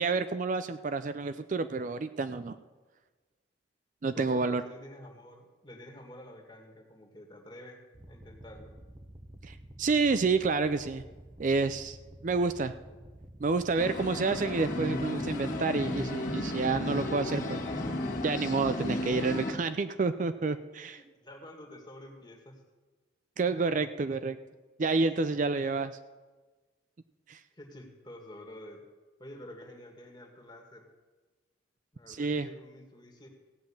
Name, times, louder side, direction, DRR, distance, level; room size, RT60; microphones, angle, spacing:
voice 1, 0.0-2.6 4.0-4.6 9.4-11.0 11.4-12.0 12.2-12.7 13.4-17.6 18.2-21.0 23.4-24.4 24.8-25.9 27.3-27.4 32.1-32.5, right 4 dB, 40° right, 11 dB, 0.4 m, -29 dB
voice 2, 4.1-7.8 8.1-8.7 18.8-19.0 21.0-22.6 27.5-28.8 29.2-30.9 31.9-33.3, left 1 dB, 20° left, 2 dB, 1.9 m, -49 dB
sound 1, 7.9-19.0, right 1 dB, 20° right, 0.7 m, -51 dB
sound 2, 13.8-19.5, left 1 dB, 45° left, 1.8 m, -34 dB
16.0 x 5.8 x 8.7 m, 1.3 s
head